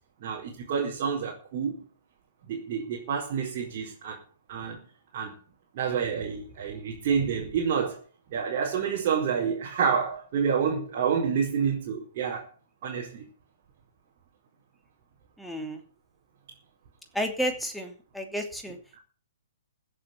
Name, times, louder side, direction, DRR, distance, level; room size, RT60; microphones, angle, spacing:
voice 1, 0.2-1.9 2.4-4.2 4.5-4.9 5.1-5.4 5.7-8.0 8.3-12.5 12.8-13.2 18.9-19.0, right 6 dB, 40° right, 4.6 m, -28 dB
voice 2, 15.4-15.8 17.1-18.8, equal, ahead, 2.9 m, -31 dB
15.5 x 7.9 x 8.1 m
figure-of-eight pair, 120°, 0 cm